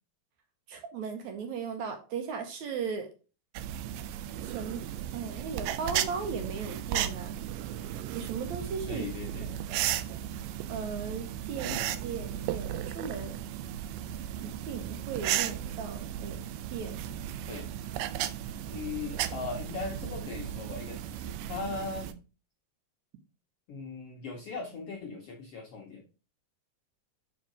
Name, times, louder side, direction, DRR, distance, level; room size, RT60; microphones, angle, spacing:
voice 1, 0.7-3.1 4.4-4.8 5.1-7.3 8.1-9.0 9.4-9.9 10.7-13.4 14.4-16.4 16.7-16.9, right 6 dB, 70° right, 5 dB, 2.1 m, -37 dB
sound 1, 3.6-22.1, right 11 dB, 90° right, 2.2 m, -35 dB
voice 2, 8.9-9.5 11.7-11.9 17.5-17.7 18.7-22.1 23.7-26.0, left 4 dB, 70° left, 1 dB, 1.4 m, -39 dB
5.4 x 5.1 x 4.9 m, 0.33 s
omnidirectional pair, 3.9 m